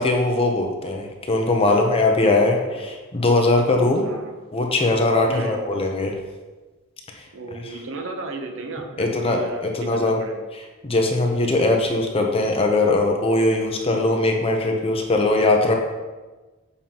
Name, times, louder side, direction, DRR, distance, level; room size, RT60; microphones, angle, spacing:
voice 1, 0.0-4.1 4.5-6.1 9.0-10.2 10.8-15.8, left 2 dB, 30° left, 2 dB, 0.8 m, -20 dB
voice 2, 1.7-2.8 4.0-4.4 5.3-5.7 7.3-10.4, right 3 dB, 65° right, 3 dB, 0.9 m, -35 dB
7.0 x 5.4 x 2.9 m, 1.2 s
head